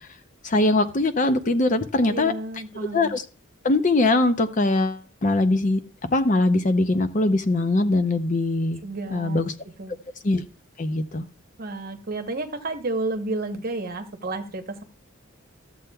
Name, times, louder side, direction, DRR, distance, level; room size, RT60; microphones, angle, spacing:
voice 1, 0.4-2.3 2.9-3.2 3.6-5.8 6.1-8.8 9.1-9.5 10.2-10.4 10.8-11.3, left 2 dB, 35° left, 8 dB, 0.6 m, -21 dB
voice 2, 2.1-3.1 8.8-9.4 9.8-10.0 11.6-14.8, right 2 dB, 40° right, 6 dB, 0.9 m, -31 dB
14.0 x 7.6 x 2.3 m, 0.35 s
head